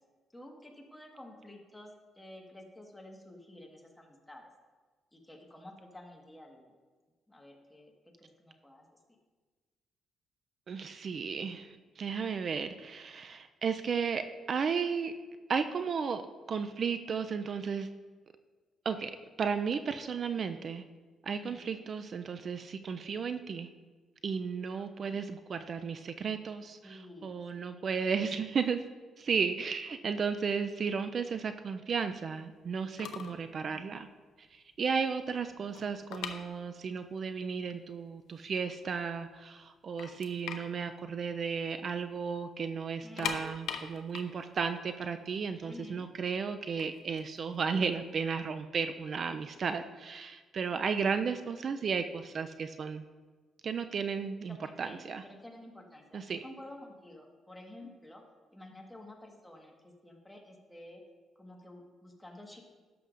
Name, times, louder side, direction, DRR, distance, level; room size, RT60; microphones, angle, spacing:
voice 1, 0.3-4.5 5.1-6.7 7.3-7.9 8.2-9.2 21.3-21.7 24.8-25.2 26.8-27.3 27.6-28.1 33.5-34.0 35.5-35.6 43.0-43.4 45.6-46.1 54.5-58.2 58.5-61.0 61.3-62.6, left 1 dB, 10° left, 1 dB, 1.4 m, -51 dB
voice 2, 10.7-15.1 15.5-16.2 16.5-17.9 18.9-19.1 19.4-20.8 21.2-23.7 24.2-28.8 29.2-34.1 34.5-53.0 53.6-55.2 56.1-56.4, right 6 dB, 50° right, 9 dB, 0.3 m, -34 dB
sound 1, 32.7-32.8 33.0-33.4 33.7-33.9 34.4-34.5 34.8-37.1 37.3-37.4 38.1-38.2 38.5-39.3 39.6-39.7 40.0-42.0 42.2-42.4 42.9-45.9 46.6-48.3, left 8 dB, 85° left, 0.6 m, -41 dB
11.5 x 6.8 x 2.5 m, 1.4 s
cardioid pair, 90°, 0 cm